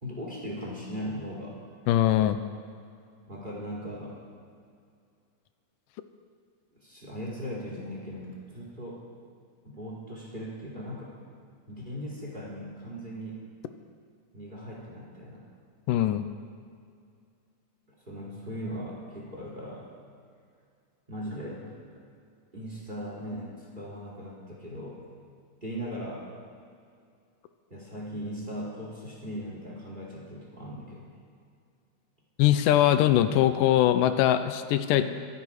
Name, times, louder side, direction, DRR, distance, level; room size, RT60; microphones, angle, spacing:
voice 1, 0.0-1.6 3.3-4.2 6.8-9.0 9.6-11.2 11.7-13.4 14.3-15.5 18.0-19.9 21.1-21.8 22.5-25.0 25.6-26.3 27.7-31.1 35.0-35.1, equal, 15° right, -4 dB, 3.0 m, -38 dB
voice 2, 1.9-2.4 15.9-16.3 32.4-35.0, left 12 dB, 90° left, 10 dB, 2.3 m, -22 dB
25.5 x 9.6 x 4.8 m, 2.3 s
omnidirectional pair, 3.8 m